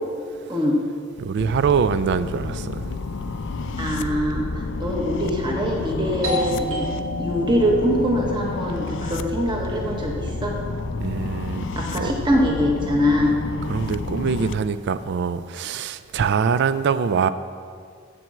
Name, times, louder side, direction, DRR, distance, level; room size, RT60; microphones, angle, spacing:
voice 1, 1.2-3.0 11.0-11.7 12.0-12.2 13.7-17.3, right 6 dB, 60° right, 0.4 m, -23 dB
sound 1, 1.4-14.5, left 3 dB, 65° left, 0.5 m, -30 dB
voice 2, 3.8-6.8 7.2-10.6 11.7-13.4, equal, 25° right, 1.2 m, -23 dB
Doorbell, 6.2-11.6, right 1 dB, 80° right, 2.1 m, -34 dB
7.7 x 7.6 x 7.5 m
head